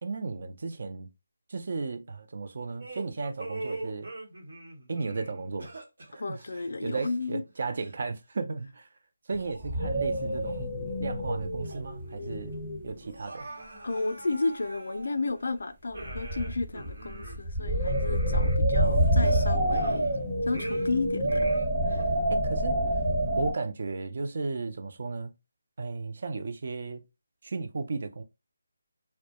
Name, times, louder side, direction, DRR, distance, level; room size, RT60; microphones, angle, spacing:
voice 1, 0.0-1.1 1.5-4.1 4.9-5.7 6.1-6.4 6.8-8.9 9.3-10.7 11.0-12.5 12.8-13.5 22.3-22.8 23.4-25.3 25.8-27.0 27.4-28.2, right 3 dB, 50° right, 0.4 m, -34 dB
sound 1, 2.8-7.5 7.8-8.0 8.7-8.8 9.4-10.6 11.0-11.1 11.6-12.1 12.4-12.5 13.0-15.4 15.9-20.2 20.5-22.0, right 2 dB, 70° right, 1.0 m, -43 dB
voice 2, 6.2-7.4 13.8-20.1 20.4-21.5 21.9-22.1, left 3 dB, 70° left, 0.4 m, -32 dB
sound 2, 9.3-9.4 9.6-13.0 13.6-13.9 16.0-23.5, right 1 dB, 20° right, 0.9 m, -27 dB
2.2 x 2.1 x 2.8 m
figure-of-eight pair, 170°, 0 cm